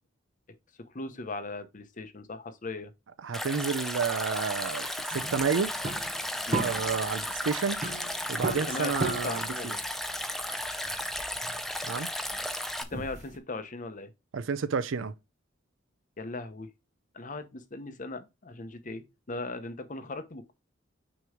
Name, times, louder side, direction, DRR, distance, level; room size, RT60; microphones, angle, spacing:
voice 1, 0.9-2.9 6.5-6.7 8.7-9.8 12.9-14.1 16.2-16.7 17.1-20.5, left 2 dB, 40° left, 0.8 m, -38 dB
voice 2, 3.2-5.7 6.5-7.8 8.3-9.7 11.9-12.1 14.3-15.1, right 5 dB, 75° right, 0.5 m, -30 dB
Stream, 3.3-12.8, left 1 dB, ahead, 0.5 m, -34 dB
sound 1, 5.1-13.4, right 3 dB, 35° right, 0.8 m, -37 dB
6.3 x 3.0 x 4.9 m
head